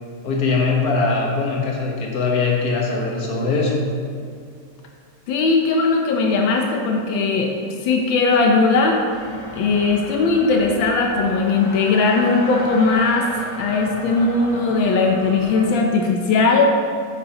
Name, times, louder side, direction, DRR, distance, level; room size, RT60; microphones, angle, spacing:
voice 1, 0.2-3.8, left 4 dB, 55° left, -2 dB, 1.9 m, -21 dB
voice 2, 5.3-9.0 9.5-13.3 13.6-16.7, left 3 dB, 85° left, 1 dB, 1.6 m, -18 dB
sound 1, 9.1-15.8, left 1 dB, 40° left, 0.4 m, -35 dB
10.5 x 9.0 x 3.0 m, 2.2 s
omnidirectional pair, 2.1 m